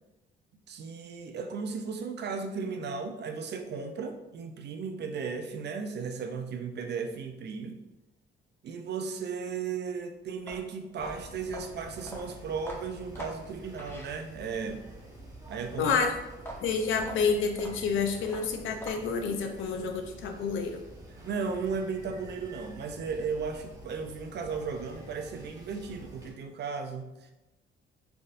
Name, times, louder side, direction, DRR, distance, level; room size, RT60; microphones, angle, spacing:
voice 1, 0.7-7.8 8.6-14.8 15.5-16.0 21.2-27.3, right 5 dB, 60° right, 6 dB, 0.5 m, -35 dB
sound 1, 10.3-14.7 16.3-19.3, equal, 10° left, 0.9 m, -44 dB
sound 2, 11.0-26.3, right 1 dB, 15° right, 1.0 m, -48 dB
voice 2, 15.8-16.1 16.6-20.8, left 5 dB, 80° left, 4 dB, 0.6 m, -29 dB
3.9 x 3.4 x 2.5 m, 1.0 s
cardioid pair, 90°, 20 cm